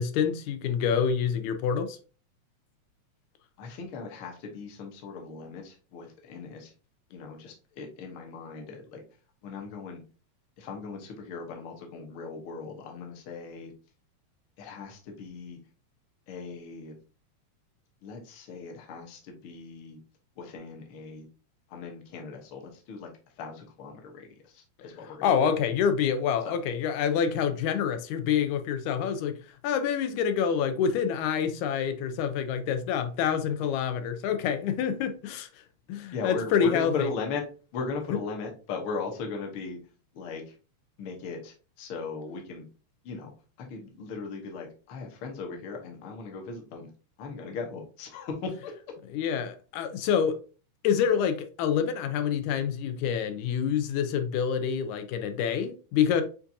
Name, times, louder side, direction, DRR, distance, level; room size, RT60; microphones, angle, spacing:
voice 1, 0.0-2.0 25.2-29.4 29.6-35.5 35.9-37.1 49.1-50.4 50.8-56.2, left 7 dB, 90° left, 2.0 m, -27 dB
voice 2, 3.6-6.7 7.1-9.0 9.4-10.0 10.6-13.7 14.6-15.6 16.3-17.0 18.0-20.0 20.4-21.3 21.7-23.1 23.4-25.3 26.4-26.6 36.1-37.4 37.7-39.8 40.1-40.5 41.0-42.6 43.0-43.3 43.6-46.9 47.2-48.7, left 4 dB, 60° left, 1.4 m, -38 dB
7.0 x 2.6 x 2.6 m
omnidirectional pair, 3.3 m